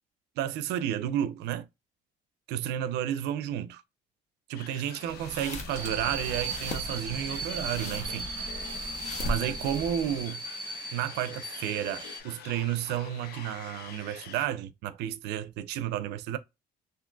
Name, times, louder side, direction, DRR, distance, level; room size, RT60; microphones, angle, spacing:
voice 1, 0.4-1.7 2.5-3.8 4.5-8.3 9.3-10.4 10.9-16.4, right 11 dB, 85° right, 0.5 m, -32 dB
sound 1, 4.5-14.5, left 8 dB, 65° left, 0.6 m, -47 dB
sound 2, 5.0-10.3, left 1 dB, 45° left, 0.9 m, -38 dB
sound 3, 5.7-12.2, right 3 dB, 25° right, 1.1 m, -38 dB
3.7 x 2.5 x 2.3 m
cardioid pair, 110°, 17 cm